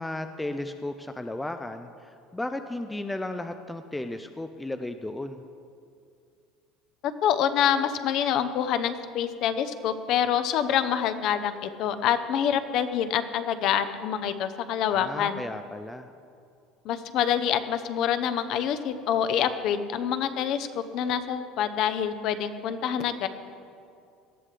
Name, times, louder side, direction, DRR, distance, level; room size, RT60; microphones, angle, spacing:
voice 1, 0.0-5.4 14.8-16.1, left 1 dB, 5° left, 7 dB, 0.4 m, -34 dB
voice 2, 7.2-15.4 16.8-23.3, left 9 dB, 45° left, 10 dB, 0.7 m, -26 dB
18.5 x 13.0 x 3.3 m, 2.4 s
cardioid pair, 170°, 0 cm